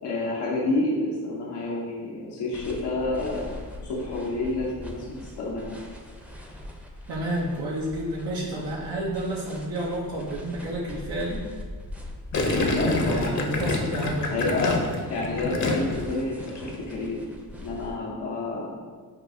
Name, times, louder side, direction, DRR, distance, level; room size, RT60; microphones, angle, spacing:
voice 1, 0.0-3.5 3.8-5.8 12.7-13.3 14.3-14.8 15.1-17.2 17.6-18.7, left 2 dB, 85° left, -4 dB, 0.8 m, -29 dB
sound 1, 2.5-17.9, left 1 dB, 5° right, 0.5 m, -41 dB
voice 2, 7.1-11.4 12.8-14.4, right 1 dB, 75° right, -4 dB, 0.7 m, -30 dB
Gurgling, 12.3-16.1 16.4-16.8, left 2 dB, 45° left, 0.7 m, -26 dB
6.5 x 2.3 x 2.6 m, 1.5 s
cardioid pair, 55°, 40 cm